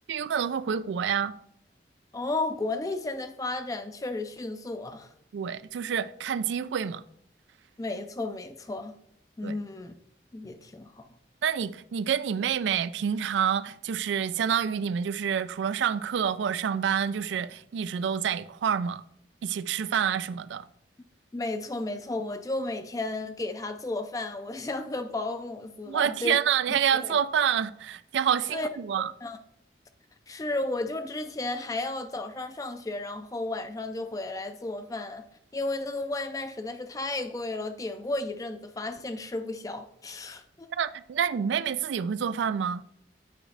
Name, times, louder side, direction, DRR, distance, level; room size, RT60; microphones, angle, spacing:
voice 1, 0.1-1.3 5.3-7.0 9.4-9.6 11.4-19.0 19.4-20.7 25.9-29.1 40.7-42.8, right 8 dB, 85° right, 0.3 m, -28 dB
voice 2, 2.1-5.1 7.8-9.0 9.4-9.9 10.3-11.1 21.3-26.4 26.9-27.1 28.5-28.7 29.2-29.4 30.3-35.2 35.5-40.7, left 2 dB, 20° left, 0.3 m, -33 dB
8.5 x 4.9 x 3.3 m
head